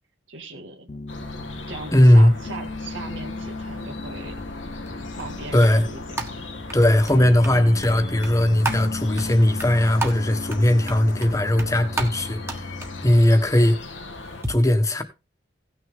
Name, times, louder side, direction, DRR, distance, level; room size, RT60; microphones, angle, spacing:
voice 1, 0.3-0.9 1.7-4.4 5.2-6.0, right 3 dB, 90° right, 1.9 m, -38 dB
Piano, 0.9-13.4, left 2 dB, 40° left, 0.5 m, -36 dB
sound 1, 1.1-14.4, left 2 dB, 85° left, 1.6 m, -38 dB
voice 2, 1.9-2.3 5.5-5.9 6.7-12.7 13.0-13.8 14.5-15.0, left 1 dB, 15° left, 1.3 m, -18 dB
sound 2, 4.9-14.5, right 2 dB, 15° right, 1.5 m, -35 dB
17.0 x 6.3 x 3.7 m
head